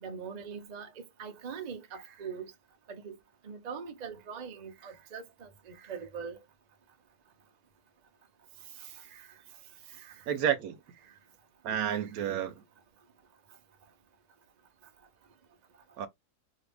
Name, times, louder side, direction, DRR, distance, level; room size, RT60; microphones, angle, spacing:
voice 1, 0.0-2.5 2.9-3.2 3.4-6.4 8.8-9.3 9.9-10.1 12.0-12.1, right 6 dB, 60° right, 0.4 m, -42 dB
voice 2, 10.3-10.8 11.6-12.6 16.0-16.1, right 9 dB, 75° right, 1.0 m, -30 dB
2.7 x 2.5 x 3.3 m
omnidirectional pair, 1.6 m